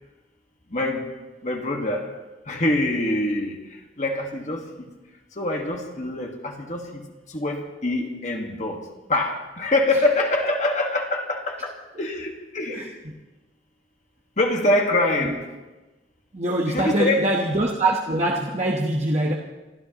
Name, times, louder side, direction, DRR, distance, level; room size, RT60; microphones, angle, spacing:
voice 1, 0.7-1.1 1.4-2.1 2.4-4.7 5.3-13.0 14.4-15.5 16.7-17.2, left 2 dB, 40° left, 1 dB, 1.6 m, -25 dB
voice 2, 16.3-19.3, right 1 dB, 35° right, -1 dB, 1.1 m, -23 dB
27.5 x 13.5 x 3.0 m, 1.1 s
head